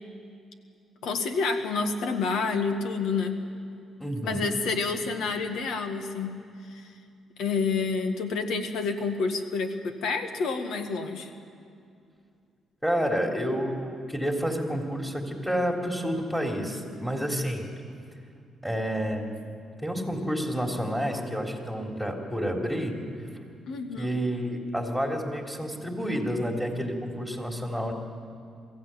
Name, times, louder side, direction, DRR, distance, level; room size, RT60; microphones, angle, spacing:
voice 1, 1.0-3.4 4.2-6.4 6.7-6.9 7.4-11.3 23.7-24.1, left 4 dB, 75° left, 6 dB, 1.8 m, -28 dB
voice 2, 4.0-4.5 12.8-17.6 18.6-19.3 19.8-22.9 24.0-27.9, equal, 5° left, 1 dB, 3.5 m, -29 dB
22.5 x 15.5 x 9.2 m, 2.4 s
cardioid pair, 90°, 0 cm